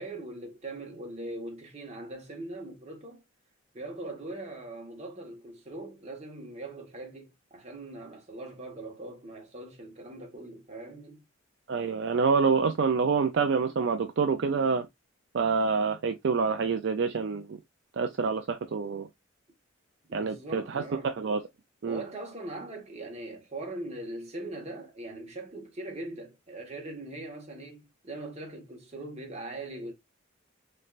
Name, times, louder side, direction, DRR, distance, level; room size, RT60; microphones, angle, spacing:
voice 1, 0.0-3.2 3.7-11.2 20.1-21.2 21.8-29.9, right 2 dB, 30° right, 1.3 m, -41 dB
voice 2, 11.7-14.9 15.3-17.6 18.0-19.1 20.1-21.4 21.8-22.0, right 5 dB, 60° right, 0.4 m, -27 dB
4.1 x 3.3 x 2.4 m
head